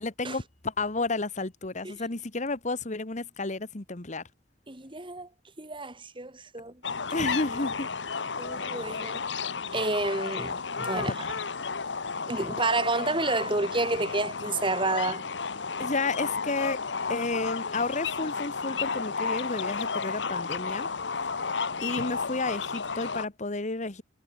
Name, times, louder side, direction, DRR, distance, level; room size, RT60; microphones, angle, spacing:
voice 1, 0.0-4.2 7.1-7.9 11.0-11.1 15.8-16.8 17.1-20.9 21.8-24.0, left 3 dB, 40° left, 1.5 m, -31 dB
voice 2, 4.7-5.3 5.6-6.8 8.4-9.2 9.7-11.1 12.3-15.2, right 2 dB, 30° right, 4.4 m, -30 dB
sound 1, 6.8-23.3, left 5 dB, 80° left, 1.3 m, -32 dB
head